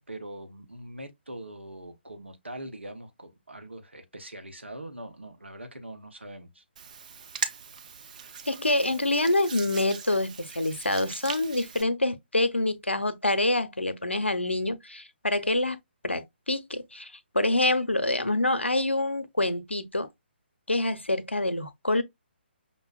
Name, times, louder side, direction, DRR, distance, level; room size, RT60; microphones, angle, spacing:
voice 1, 0.0-6.6, right 1 dB, 85° right, 0.8 m, -42 dB
Hands, 6.8-11.8, right 6 dB, 40° right, 0.5 m, -39 dB
voice 2, 8.5-15.8 16.0-20.1 20.7-22.0, left 2 dB, 90° left, 0.6 m, -26 dB
5.4 x 2.1 x 2.3 m
figure-of-eight pair, 140°, 6 cm